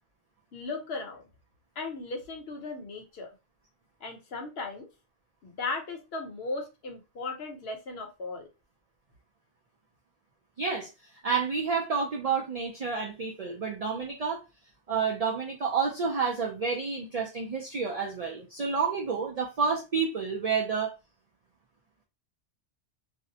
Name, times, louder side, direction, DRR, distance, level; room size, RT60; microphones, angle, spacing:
voice 1, 0.5-1.2 1.8-3.3 4.0-4.9 5.4-8.5, left 3 dB, 65° left, 3 dB, 0.9 m, -37 dB
voice 2, 10.6-10.9 11.2-14.4 14.9-20.9, right 5 dB, 70° right, 0 dB, 0.3 m, -29 dB
2.5 x 2.0 x 2.7 m, 0.27 s
omnidirectional pair, 1.2 m